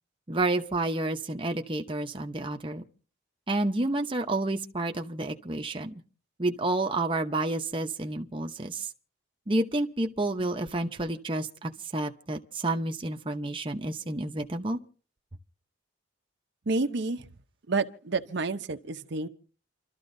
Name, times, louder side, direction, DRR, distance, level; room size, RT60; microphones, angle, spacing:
voice 1, 0.3-2.8 3.5-5.9 6.4-8.9 9.5-14.8, right 2 dB, 25° right, 0.8 m, -30 dB
voice 2, 16.7-17.3 17.7-19.3, right 3 dB, 60° right, 0.8 m, -29 dB
28.5 x 13.0 x 2.7 m
head